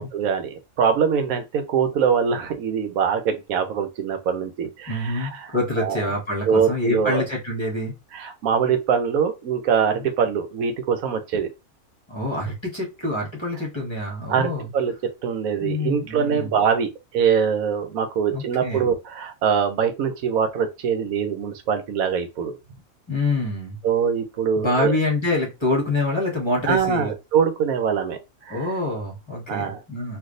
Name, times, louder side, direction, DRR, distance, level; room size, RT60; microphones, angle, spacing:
voice 1, 0.0-5.3 5.8-6.0 6.5-7.3 8.1-11.5 14.3-14.9 15.2-22.5 23.8-25.0 26.7-28.2 28.5-28.7 29.5-29.8, right 7 dB, 75° right, 1.1 m, -23 dB
voice 2, 4.9-7.9 12.1-14.7 15.6-16.6 18.3-18.9 23.1-23.8 24.6-27.1 28.5-30.2, left 2 dB, 20° left, 1.0 m, -26 dB
3.3 x 2.6 x 2.5 m
omnidirectional pair, 1.6 m